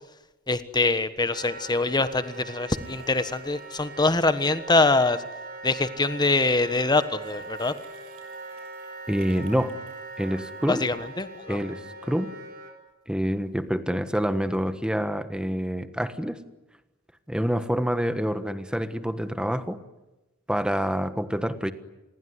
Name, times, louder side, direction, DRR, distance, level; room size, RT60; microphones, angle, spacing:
voice 1, 0.5-5.2 5.6-7.7 10.7-11.6, left 3 dB, 20° left, 12 dB, 1.3 m, -24 dB
Wind instrument woodwind instrument, 1.3-12.7, right 3 dB, 45° right, 4.7 m, -41 dB
sound 1, 2.8-5.0 5.2-5.5 6.6-11.5, right 3 dB, 85° right, 6.3 m, -54 dB
voice 2, 9.1-9.8 10.2-10.8 11.5-12.3 13.1-16.4 17.3-19.8 20.5-21.7, equal, 5° right, 10 dB, 1.3 m, -27 dB
27.5 x 21.0 x 9.6 m, 1.0 s
head